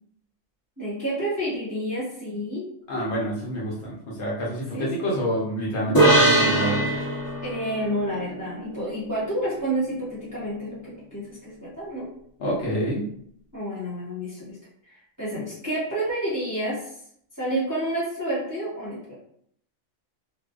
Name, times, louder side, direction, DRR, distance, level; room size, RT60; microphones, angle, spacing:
voice 1, 0.8-2.7 4.7-5.1 7.4-12.1 13.5-14.6 14.9-16.9 17.4-19.2, right 1 dB, 20° right, -9 dB, 0.6 m, -29 dB
voice 2, 2.9-6.9 12.4-13.1, equal, 60° left, -5 dB, 0.9 m, -27 dB
sound 1, 5.9-9.4, right 1 dB, 30° left, 0.4 m, -22 dB
2.5 x 2.1 x 2.3 m, 0.66 s
omnidirectional pair, 1.4 m